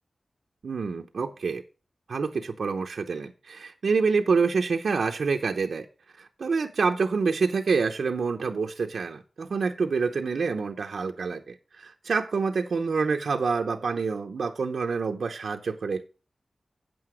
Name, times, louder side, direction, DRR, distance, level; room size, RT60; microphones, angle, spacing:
voice 1, 0.6-1.6 2.1-5.9 6.2-16.1, right 4 dB, 90° right, 3 dB, 0.7 m, -27 dB
8.4 x 7.8 x 4.9 m, 0.34 s
wide cardioid pair, 100°, 0 cm